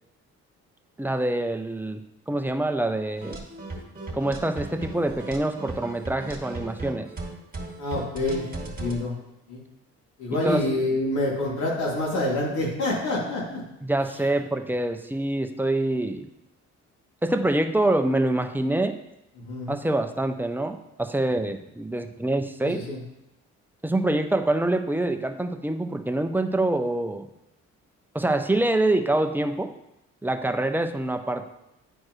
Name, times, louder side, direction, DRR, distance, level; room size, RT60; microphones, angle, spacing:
voice 1, 1.0-3.4 4.1-7.1 10.3-10.6 13.8-16.3 17.2-19.0 19.7-22.8 23.8-27.3 28.1-29.7 30.2-31.4, right 1 dB, 5° right, 6 dB, 0.6 m, -25 dB
sound 1, 3.2-9.0, right 2 dB, 30° right, 2.1 m, -36 dB
voice 2, 7.8-9.1 9.5-9.6 10.2-13.6 19.4-19.8 22.6-23.0, left 2 dB, 75° left, -5 dB, 2.7 m, -27 dB
9.8 x 4.4 x 3.2 m, 0.86 s
cardioid pair, 90°, 30 cm